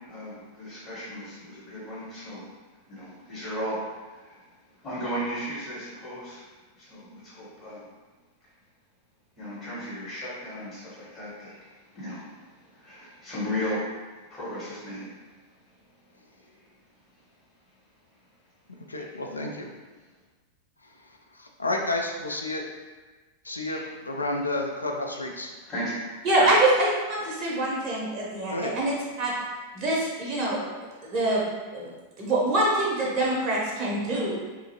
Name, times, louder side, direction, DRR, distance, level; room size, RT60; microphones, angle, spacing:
voice 1, 0.1-2.4 2.9-3.8 4.2-4.3 4.8-6.4 6.8-7.8 9.4-11.5 11.9-12.3 12.8-13.8 14.3-15.1 18.9-19.1 23.6-23.8 25.7-26.0, equal, 25° left, -10 dB, 1.3 m, -35 dB
voice 2, 18.9-19.7 21.4-22.6 23.4-25.5 28.5-28.7, left 2 dB, 80° left, 1 dB, 0.3 m, -30 dB
voice 3, 26.2-29.3 29.7-30.6 31.1-31.4 31.7-31.9 32.2-34.3, right 1 dB, 30° right, -4 dB, 0.6 m, -24 dB
2.6 x 2.4 x 2.8 m, 1.3 s
figure-of-eight pair, 90°, 0 cm